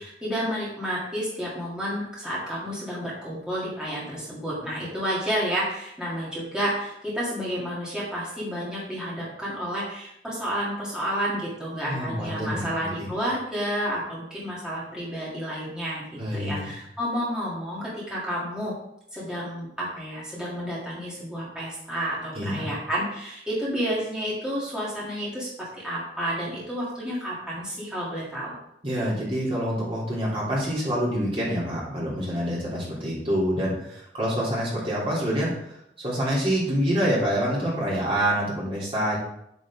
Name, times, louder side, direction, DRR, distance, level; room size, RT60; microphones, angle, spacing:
voice 1, 0.0-16.0 16.3-18.7 19.1-28.5, equal, 5° right, -8 dB, 3.0 m, -30 dB
voice 2, 11.9-12.7 13.0-13.1 16.2-16.7 22.3-22.7 28.8-39.2, equal, 30° right, -6 dB, 3.3 m, -26 dB
9.2 x 9.1 x 3.7 m, 0.77 s
head